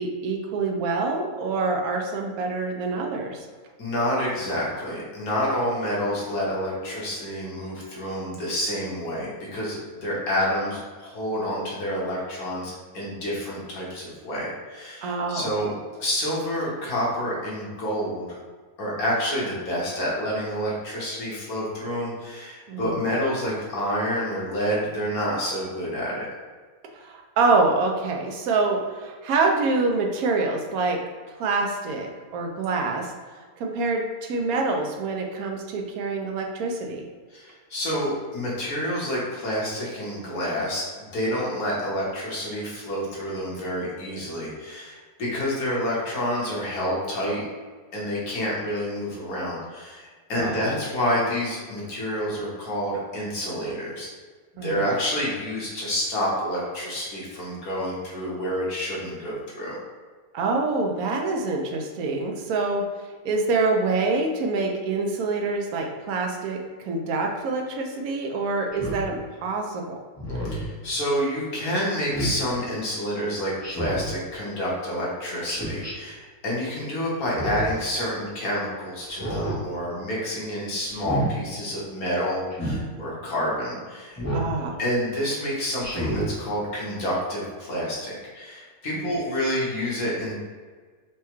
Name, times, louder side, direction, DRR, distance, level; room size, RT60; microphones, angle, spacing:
voice 1, 0.0-3.5 15.0-15.5 22.7-23.0 26.9-31.0 31.3-37.0 50.3-50.6 54.6-54.9 60.3-62.8 63.2-69.8 84.3-84.8 88.9-89.1, right 3 dB, 75° right, 2 dB, 1.0 m, -26 dB
voice 2, 3.8-15.7 16.0-18.3 18.8-26.3 37.3-47.4 47.9-54.1 54.6-59.8 70.5-84.2 84.8-90.4, equal, 70° left, -5 dB, 1.6 m, -28 dB
Speech synthesizer, 68.7-69.0 70.2-70.7 72.1-72.4 73.6-74.1 75.4-75.9 77.2-77.8 79.1-79.6 80.9-81.3 82.5-82.8 84.2-84.5 85.8-86.3, right 1 dB, 20° left, 0.5 m, -29 dB
4.6 x 2.2 x 3.0 m, 1.5 s
omnidirectional pair, 1.6 m